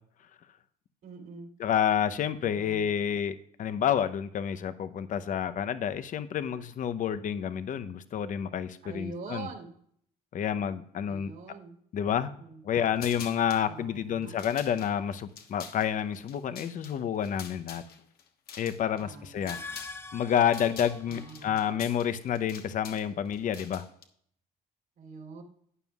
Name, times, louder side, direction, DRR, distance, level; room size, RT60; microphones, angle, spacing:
voice 1, 1.0-1.5 2.5-3.0 8.8-9.7 11.1-11.8 12.4-12.6 13.7-14.4 19.0-19.6 21.0-21.8 25.0-25.4, right 4 dB, 65° right, 1 dB, 3.1 m, -44 dB
voice 2, 1.6-9.5 10.3-11.3 11.9-12.3 12.6-17.8 18.6-19.6 20.1-23.8, left 9 dB, 50° left, 12 dB, 0.8 m, -29 dB
sound 1, 13.0-13.7 14.2-20.0 20.3-24.0, left 7 dB, 65° left, 1.3 m, -47 dB
sound 2, 19.3-21.5, left 4 dB, 15° left, 0.6 m, -44 dB
12.5 x 9.2 x 2.4 m, 0.64 s
cardioid pair, 110°, 17 cm